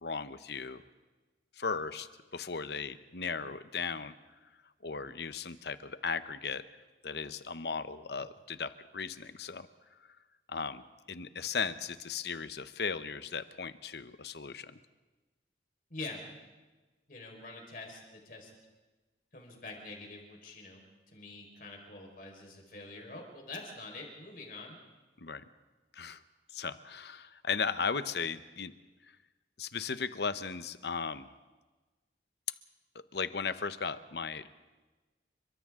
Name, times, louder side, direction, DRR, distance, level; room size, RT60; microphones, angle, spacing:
voice 1, 0.0-0.8 1.5-4.1 4.8-6.6 7.0-9.7 10.5-14.8 25.2-25.4 25.9-26.2 26.5-28.7 29.6-31.3 33.1-34.5, left 5 dB, 75° left, 13 dB, 0.8 m, -36 dB
voice 2, 17.1-18.5 19.3-20.8 21.1-24.8, left 3 dB, 50° left, 1 dB, 4.7 m, -45 dB
30.0 x 23.5 x 3.7 m, 1.2 s
head